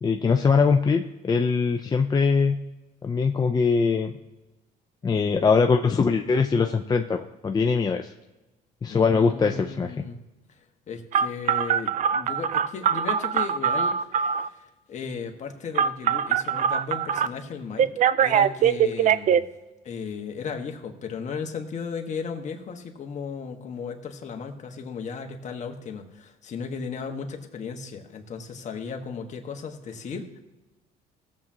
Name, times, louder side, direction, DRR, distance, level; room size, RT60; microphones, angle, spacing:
voice 1, 0.0-2.6 3.0-4.1 5.0-8.1 8.8-10.0, left 5 dB, 25° left, 4 dB, 0.5 m, -22 dB
voice 2, 8.9-10.2 10.5-17.9 18.2-19.5 19.8-30.4, left 5 dB, 45° left, 4 dB, 1.4 m, -36 dB
Telephone, 11.1-14.5 15.8-17.3 17.8-19.4, right 8 dB, 50° right, 0.4 m, -22 dB
17.5 x 7.5 x 2.8 m, 1.1 s
cardioid pair, 110°, 17 cm